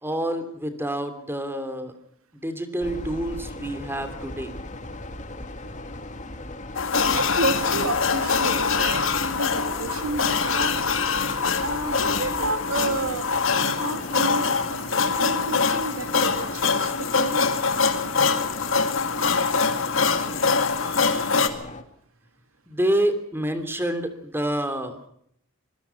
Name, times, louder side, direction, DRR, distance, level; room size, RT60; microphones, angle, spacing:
voice 1, 0.0-1.9 2.4-4.5 22.7-25.1, right 1 dB, 10° right, 10 dB, 3.0 m, -27 dB
sound 1, 2.8-21.8, left 1 dB, 35° left, 2.5 m, -38 dB
sound 2, 6.8-21.5, left 5 dB, 65° left, 2.4 m, -24 dB
voice 2, 7.1-9.0 9.3-10.7 11.6-13.3 13.6-18.0 20.8-21.4 23.6-23.8, right 2 dB, 85° right, 9 dB, 2.6 m, -31 dB
26.0 x 21.0 x 5.8 m, 0.69 s
head